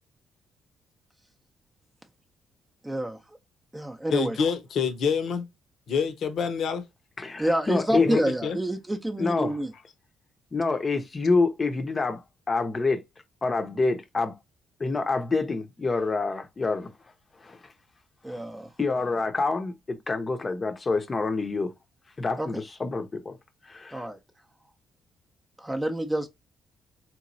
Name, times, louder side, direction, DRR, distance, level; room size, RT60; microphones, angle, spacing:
voice 1, 2.8-3.4 3.7-4.4 7.4-9.7 18.2-18.7 22.4-22.5 23.9-24.2 25.6-26.3, right 1 dB, 10° right, 0.5 m, -28 dB
voice 2, 4.1-5.5 5.9-6.8 7.9-8.6, left 6 dB, 65° left, 0.8 m, -27 dB
voice 3, 7.2-8.1 9.2-9.5 10.5-12.2 12.5-13.0 13.4-14.4 14.8-16.9 17.4-17.6 18.3-18.4 18.8-21.7 22.2-23.3 23.7-24.1, left 3 dB, 30° left, 0.7 m, -27 dB
3.7 x 3.0 x 2.6 m
cardioid pair, 90°, 0 cm